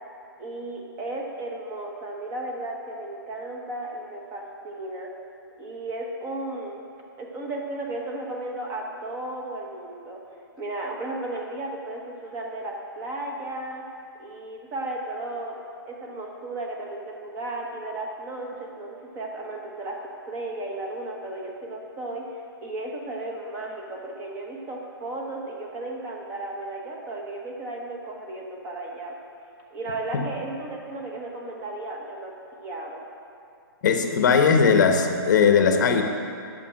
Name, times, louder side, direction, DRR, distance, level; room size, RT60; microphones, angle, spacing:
voice 1, 0.4-5.1 5.6-6.8 7.2-10.2 10.6-13.8 14.2-15.6 15.9-29.1 29.7-33.1, right 2 dB, 15° right, 0 dB, 1.0 m, -34 dB
voice 2, 33.8-36.0, left 6 dB, 50° left, 5 dB, 0.9 m, -19 dB
8.9 x 6.1 x 7.4 m, 2.4 s
hypercardioid pair, 160°, 13 cm